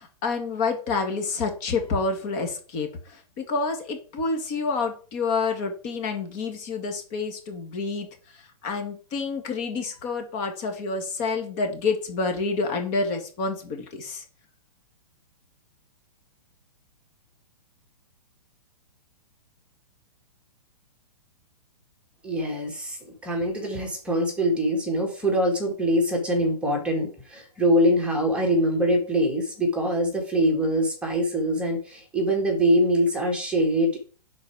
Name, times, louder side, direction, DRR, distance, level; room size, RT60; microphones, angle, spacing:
voice 1, 0.0-14.2, left 4 dB, 30° left, 4 dB, 1.6 m, -28 dB
voice 2, 22.2-34.0, equal, 5° right, 0 dB, 1.7 m, -23 dB
10.5 x 4.2 x 4.7 m, 0.40 s
hypercardioid pair, 150°, 20 cm